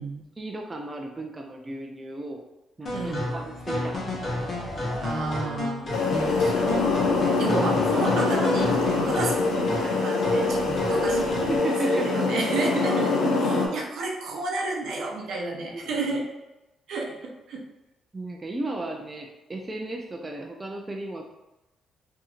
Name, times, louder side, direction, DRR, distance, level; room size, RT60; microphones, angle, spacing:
voice 1, 0.4-2.4 2.8-4.4 11.5-12.3 15.7-16.1 18.1-21.2, right 2 dB, 25° right, 2 dB, 0.3 m, -35 dB
sound 1, 2.9-11.6, left 1 dB, 40° left, 0.7 m, -32 dB
voice 2, 2.9-3.3 5.0-6.0 6.3-6.7 7.4-16.2 16.9-17.6, right 3 dB, 75° right, -1 dB, 0.6 m, -31 dB
sound 2, 5.9-13.7, left 3 dB, 80° left, 0.4 m, -24 dB
2.8 x 2.6 x 2.4 m, 0.98 s
cardioid pair, 90°, 0 cm